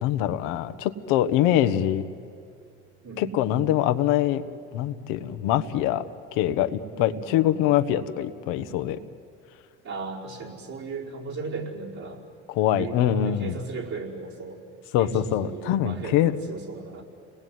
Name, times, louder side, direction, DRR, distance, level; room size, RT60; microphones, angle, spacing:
voice 1, 0.0-2.0 3.2-4.4 4.7-6.0 6.3-9.0 12.5-13.6 14.9-16.3, left 11 dB, 75° left, 9 dB, 1.2 m, -24 dB
voice 2, 3.0-3.4 6.9-7.4 9.8-12.2 12.8-14.6 15.0-17.0, right 4 dB, 55° right, -2 dB, 5.2 m, -36 dB
29.5 x 19.5 x 9.5 m, 2.4 s
supercardioid pair, 80°, 32 cm